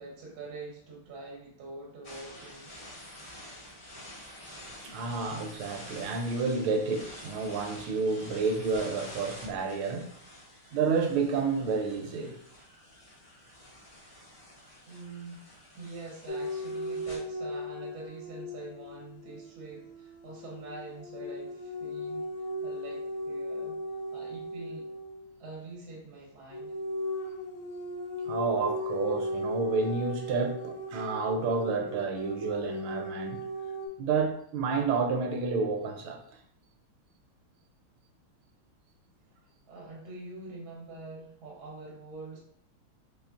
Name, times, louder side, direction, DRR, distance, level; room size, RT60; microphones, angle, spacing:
voice 1, 0.0-2.8 14.8-22.3 22.6-23.8 24.1-24.9 25.4-26.8 39.7-42.4, right 3 dB, 55° right, 1.4 m, -45 dB
sound 1, 2.0-17.2, left 1 dB, 35° left, 1.0 m, -48 dB
voice 2, 4.8-10.1 10.7-12.4 28.3-33.4 34.0-36.2, right 4 dB, 80° right, 1.4 m, -30 dB
sound 2, 16.3-25.3 26.5-33.9, equal, 65° left, 0.9 m, -37 dB
4.2 x 3.5 x 2.5 m
omnidirectional pair, 2.4 m